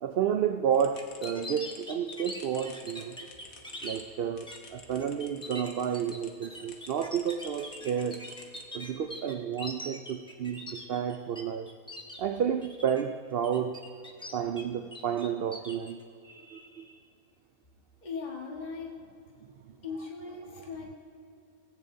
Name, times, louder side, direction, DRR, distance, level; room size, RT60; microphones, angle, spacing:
voice 1, 0.0-3.2 3.8-8.3 8.7-11.7 12.2-13.9 14.2-17.0, right 8 dB, 75° right, 0.5 m, -31 dB
sound 1, 0.7-6.3 6.7-9.0, left 5 dB, 70° left, 1.6 m, -52 dB
sound 2, 1.0-4.0 4.5-4.7 5.0-11.4 11.7-12.2 12.6-13.0 13.4-14.6 14.9-15.9, left 1 dB, 5° left, 0.9 m, -42 dB
voice 2, 18.0-18.9 19.8-21.0, left 4 dB, 30° left, 1.7 m, -38 dB
17.5 x 16.5 x 2.7 m
omnidirectional pair, 1.5 m